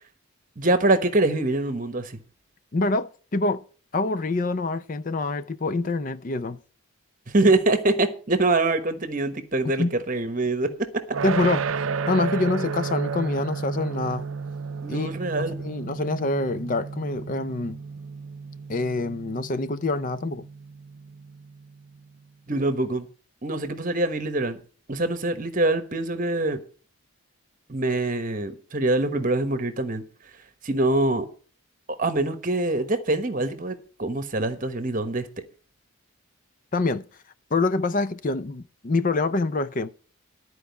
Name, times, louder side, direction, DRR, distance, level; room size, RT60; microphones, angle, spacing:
voice 1, 0.6-2.2 7.3-11.0 14.8-15.6 22.5-23.1 23.4-24.6 24.9-26.6 27.7-30.0 30.6-31.3 32.0-35.3, right 2 dB, 40° right, 1.1 m, -24 dB
voice 2, 2.7-3.6 3.9-6.6 9.8-9.9 11.2-11.7 12.1-14.2 14.9-15.1 15.4-17.8 18.7-20.5 36.7-37.1 37.5-39.9, left 3 dB, 40° left, 0.5 m, -26 dB
sound 1, 11.1-22.1, right 5 dB, 70° right, 0.5 m, -33 dB
12.5 x 4.8 x 8.1 m
head